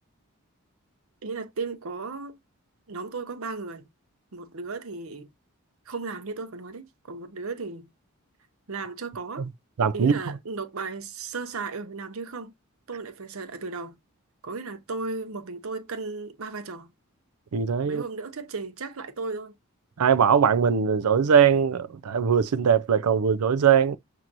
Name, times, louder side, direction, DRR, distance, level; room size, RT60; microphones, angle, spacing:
voice 1, 1.2-2.4 2.9-3.9 4.3-5.3 5.9-7.9 8.7-9.5 9.9-12.5 12.9-14.0 14.4-16.9 17.8-19.5, right 4 dB, 75° right, 0.8 m, -35 dB
voice 2, 9.8-10.1 17.5-18.0 20.0-24.0, right 7 dB, 90° right, 0.5 m, -21 dB
6.0 x 2.9 x 2.5 m
head